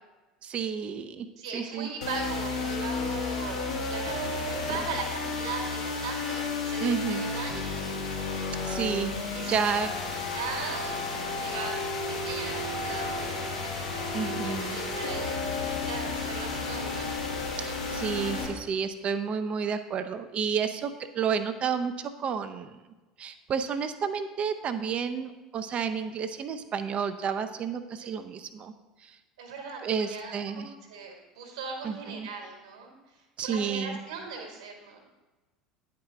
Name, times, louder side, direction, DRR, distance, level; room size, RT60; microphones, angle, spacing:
voice 1, 0.4-1.3 1.5-1.9 6.8-7.3 8.6-9.1 9.5-9.9 14.1-14.8 17.6-22.8 23.2-28.7 29.0-29.2 29.8-30.7 31.8-32.3 33.4-34.0, right 6 dB, 35° right, 9 dB, 0.5 m, -31 dB
voice 2, 1.4-8.1 9.3-9.5 10.3-11.0 11.3-11.8 12.1-17.1 28.0-28.1 29.4-30.6 30.9-33.1 33.4-35.0, right 5 dB, 65° right, 2 dB, 1.4 m, -39 dB
sound 1, 2.0-18.5, left 3 dB, 70° left, 1.6 m, -32 dB
9.5 x 4.7 x 3.7 m, 1.2 s
figure-of-eight pair, 70°, 3 cm